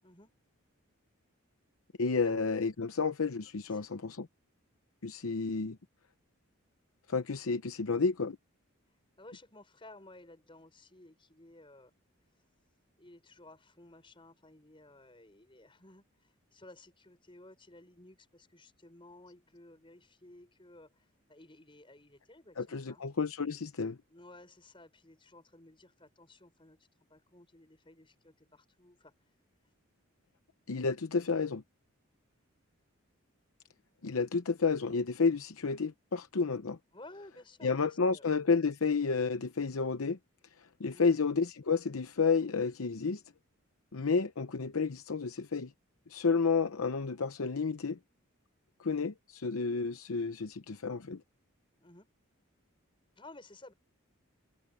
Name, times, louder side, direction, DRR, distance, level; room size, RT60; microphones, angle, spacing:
voice 1, 2.0-4.3 5.0-5.8 7.1-8.4 22.6-24.0 30.7-31.6 34.0-36.8 37.6-40.2 40.8-43.2 43.9-45.7 46.1-48.0 48.8-51.2, left 4 dB, 75° left, 0.8 m, -31 dB
voice 2, 9.2-11.9 13.0-23.0 24.1-29.1 36.9-38.2 40.9-41.2 51.8-52.1 53.2-53.7, left 2 dB, 25° left, 5.9 m, -55 dB
head